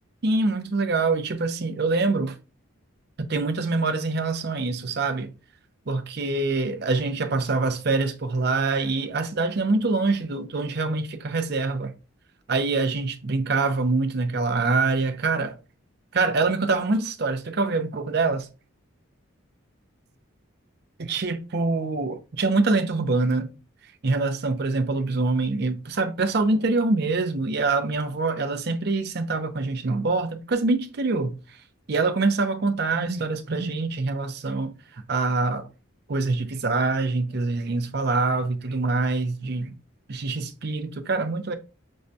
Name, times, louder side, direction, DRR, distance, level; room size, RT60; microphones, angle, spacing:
voice 1, 0.2-2.3 3.2-5.3 5.9-11.9 12.5-15.6 16.1-18.5 21.0-23.5 24.0-31.4 31.9-34.7 35.1-35.7 36.1-39.7 40.1-41.5, right 3 dB, 50° right, 0.5 m, -25 dB
6.2 x 2.2 x 2.6 m
head